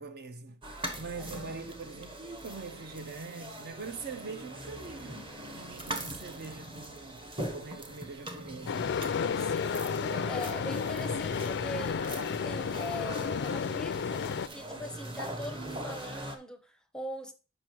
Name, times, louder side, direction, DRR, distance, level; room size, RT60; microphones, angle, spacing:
voice 1, 0.0-9.0 11.0-11.1, right 4 dB, 50° right, 0.6 m, -43 dB
sound 1, 0.6-16.4, right 1 dB, 25° right, 1.0 m, -42 dB
voice 2, 1.2-1.6 9.4-12.1 12.4-14.0 14.5-17.3, left 1 dB, 5° left, 0.7 m, -42 dB
sound 2, 8.7-14.5, left 6 dB, 50° left, 0.4 m, -32 dB
7.3 x 5.4 x 4.6 m
head